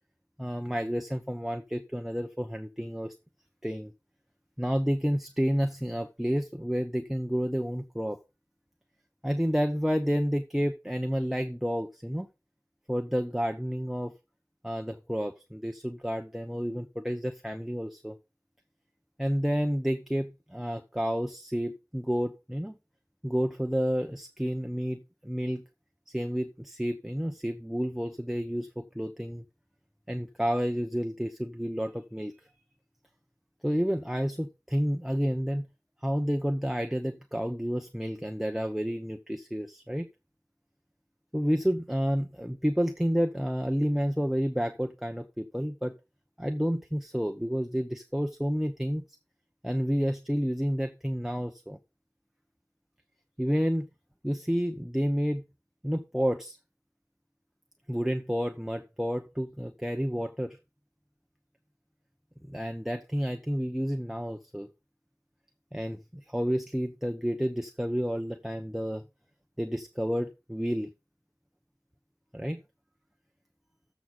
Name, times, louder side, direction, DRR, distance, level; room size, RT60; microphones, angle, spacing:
voice 1, 0.4-3.1 3.6-3.9 4.6-8.2 9.2-12.3 12.9-14.1 14.6-18.1 19.2-22.7 23.2-25.6 26.1-29.4 30.1-32.3 33.6-35.6 36.0-40.1 41.3-45.9 46.4-49.2 49.6-51.8 53.4-53.9 54.2-55.4 55.8-56.6 57.9-60.6 62.5-64.7 65.7-69.0 69.6-70.9 72.3-72.6, equal, 5° right, 7 dB, 0.9 m, -30 dB
14.0 x 6.2 x 3.8 m, 0.27 s
wide cardioid pair, 40°, 7 cm